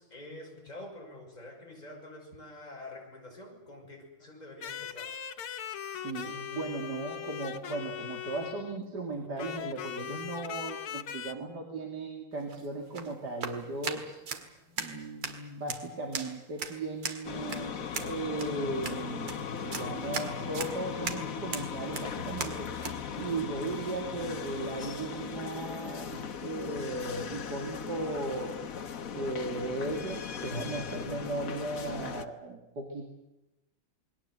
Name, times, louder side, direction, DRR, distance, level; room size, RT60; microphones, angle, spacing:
voice 1, 0.0-5.2, left 1 dB, 20° left, 0 dB, 6.6 m, -47 dB
sound 1, 4.6-8.9 9.4-11.3, left 9 dB, 80° left, 2.0 m, -39 dB
voice 2, 6.0-14.2 14.8-22.7 23.2-28.5 29.1-33.1, right 2 dB, 50° right, 1 dB, 3.2 m, -36 dB
sound 2, 12.3-23.0, right 5 dB, 85° right, 2.9 m, -39 dB
sound 3, 17.2-32.2, left 7 dB, 50° left, 1.3 m, -38 dB
28.0 x 21.0 x 7.7 m, 0.97 s
omnidirectional pair, 2.4 m